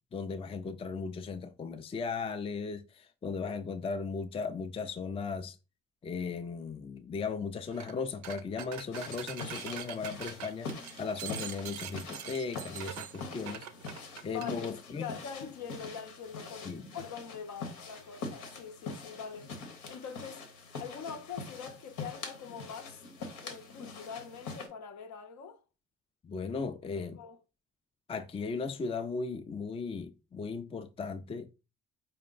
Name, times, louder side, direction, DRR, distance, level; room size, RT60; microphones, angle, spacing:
voice 1, 0.1-5.6 6.0-10.7 11.0-13.7 14.2-15.1 16.7-16.8 26.2-27.2 28.1-31.5, left 5 dB, 20° left, 0.4 m, -37 dB
sound 1, 7.7-7.9 8.2-14.5, right 10 dB, 70° right, 0.5 m, -43 dB
sound 2, 8.9-24.7, left 4 dB, 90° left, 1.0 m, -44 dB
voice 2, 13.2-13.6 14.3-23.0 23.4-25.6 26.9-27.4, left 6 dB, 70° left, 0.7 m, -44 dB
4.4 x 2.2 x 3.8 m
cardioid pair, 90°, 30 cm